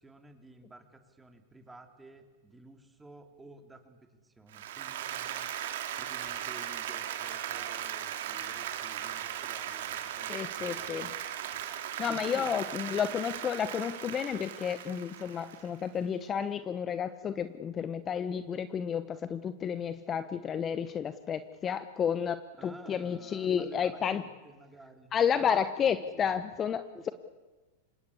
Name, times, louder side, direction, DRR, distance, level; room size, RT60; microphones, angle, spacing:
voice 1, 0.0-5.5 6.0-11.1 12.1-12.5 22.6-26.4 26.9-27.1, right 2 dB, 10° right, 6 dB, 3.1 m, -53 dB
Applause, 4.5-15.9, right 10 dB, 70° right, 2.6 m, -38 dB
voice 2, 10.3-11.1 12.0-24.2 25.1-27.1, left 8 dB, 25° left, 12 dB, 1.0 m, -31 dB
26.0 x 21.0 x 8.4 m, 1.2 s
hypercardioid pair, 115°, 0 cm